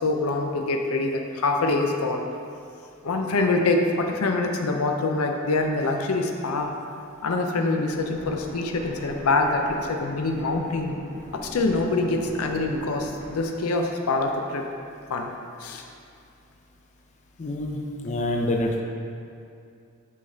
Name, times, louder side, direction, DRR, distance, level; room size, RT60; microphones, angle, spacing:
voice 1, 0.0-2.2 3.0-6.7 7.2-11.0 11.3-14.7 15.1-15.3 15.6-15.8, left 3 dB, 80° left, 3 dB, 0.5 m, -25 dB
sound 1, 7.9-13.4, right 1 dB, 35° right, 0.6 m, -42 dB
voice 2, 17.4-18.8, left 1 dB, 35° left, 1 dB, 0.4 m, -27 dB
6.2 x 5.8 x 2.7 m, 2.5 s
head